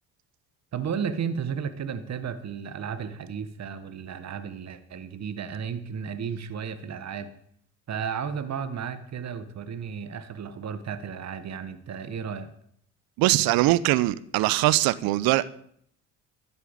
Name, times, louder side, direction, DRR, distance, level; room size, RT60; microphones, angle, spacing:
voice 1, 0.7-7.3 7.9-12.5, right 7 dB, 45° right, 1.6 m, -33 dB
voice 2, 13.2-15.4, right 17 dB, 65° right, 0.8 m, -22 dB
13.0 x 7.0 x 8.8 m
hypercardioid pair, 55°, 38 cm